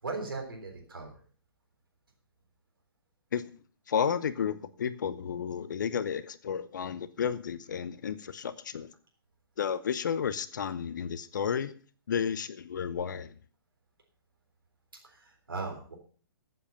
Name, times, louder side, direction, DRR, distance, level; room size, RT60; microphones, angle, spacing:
voice 1, 0.0-1.2 15.0-15.9, right 3 dB, 70° right, 1 dB, 3.6 m, -38 dB
voice 2, 3.9-8.9 9.6-11.7 12.1-13.3, left 7 dB, 55° left, 14 dB, 0.8 m, -32 dB
15.0 x 7.9 x 5.6 m, 0.42 s
figure-of-eight pair, 120°, 12 cm